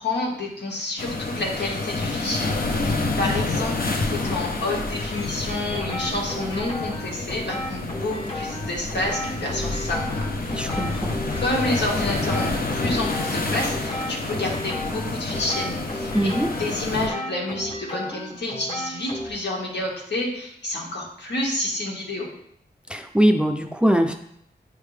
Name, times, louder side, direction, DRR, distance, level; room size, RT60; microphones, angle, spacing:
voice 1, 0.0-10.8 11.4-22.3, left 2 dB, 85° left, -2 dB, 1.7 m, -29 dB
sound 1, 1.0-17.1, left 3 dB, 60° left, 0.8 m, -28 dB
sound 2, 5.7-19.3, left 1 dB, 35° left, 1.1 m, -34 dB
voice 2, 10.5-11.1 16.1-16.5 22.9-24.1, equal, 5° right, 6 dB, 0.4 m, -21 dB
9.1 x 3.6 x 3.3 m, 0.71 s
wide cardioid pair, 140°, 17 cm